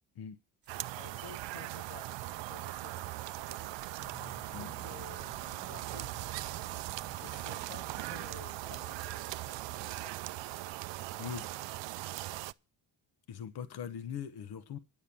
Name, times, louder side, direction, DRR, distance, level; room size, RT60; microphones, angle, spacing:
Water drip, 0.6-9.7, right 5 dB, 25° right, 1.4 m, -62 dB
sound 1, 0.7-12.5, right 17 dB, 70° right, 0.5 m, -40 dB
voice 1, 0.9-3.9 4.4-6.7 7.2-10.3, left 7 dB, 70° left, 1.3 m, -54 dB
sound 2, 4.0-9.3, left 3 dB, 15° left, 1.0 m, -56 dB
voice 2, 11.2-11.5 13.3-14.8, left 8 dB, 55° left, 0.9 m, -41 dB
10.5 x 7.3 x 8.2 m
cardioid pair, 155°, 46 cm